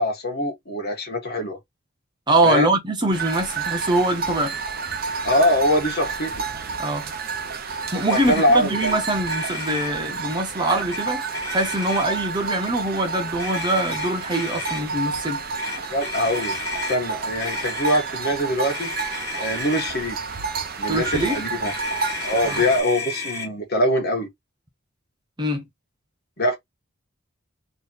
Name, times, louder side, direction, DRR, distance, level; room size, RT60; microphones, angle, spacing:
voice 1, 0.0-1.6 2.4-2.7 5.2-6.4 8.1-9.0 15.9-16.6 16.9-18.9 19.4-20.2 20.8-21.7 22.2-24.3 26.4-26.6, left 1 dB, 50° left, 1.6 m, -23 dB
voice 2, 2.3-4.6 6.8-7.1 7.9-11.2 11.5-15.4 20.9-21.4 22.4-22.6 25.4-25.7, right 1 dB, 20° right, 1.2 m, -23 dB
sound 1, 3.1-22.8, right 5 dB, 45° right, 0.9 m, -30 dB
Motor vehicle (road), 8.1-8.5 8.8-9.0 9.2-9.9 10.7-11.0 11.3-12.2 13.4-14.8 15.6-17.0 17.4-18.0 18.6-19.9 21.0-23.5, left 4 dB, 15° left, 2.0 m, -33 dB
3.4 x 3.0 x 4.2 m
head